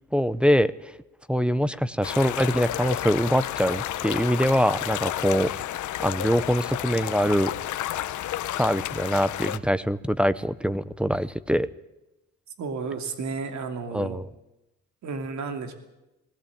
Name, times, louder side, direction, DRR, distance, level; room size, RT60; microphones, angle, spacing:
voice 1, 0.1-0.9 1.3-5.5 6.0-7.5 8.6-11.7 13.9-14.3, equal, 5° right, 12 dB, 0.8 m, -23 dB
sound 1, 2.0-9.6, left 13 dB, 75° left, 1.0 m, -31 dB
voice 2, 12.6-14.2 15.0-15.7, right 4 dB, 70° right, 7 dB, 2.8 m, -32 dB
20.0 x 17.0 x 8.8 m, 0.96 s
cardioid pair, 90°, 30 cm